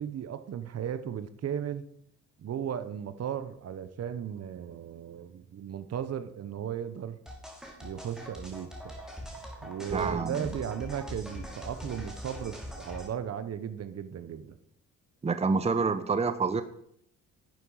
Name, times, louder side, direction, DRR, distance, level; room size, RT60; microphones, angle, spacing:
voice 1, 0.0-1.8 2.4-7.2 7.8-8.9 9.6-14.6, right 9 dB, 55° right, 12 dB, 1.0 m, -36 dB
sound 1, 7.3-13.1, equal, ahead, 2.9 m, -42 dB
voice 2, 9.9-10.5 15.2-16.6, right 4 dB, 20° right, 11 dB, 0.8 m, -27 dB
11.0 x 8.2 x 5.6 m, 0.70 s
cardioid pair, 90°, 30 cm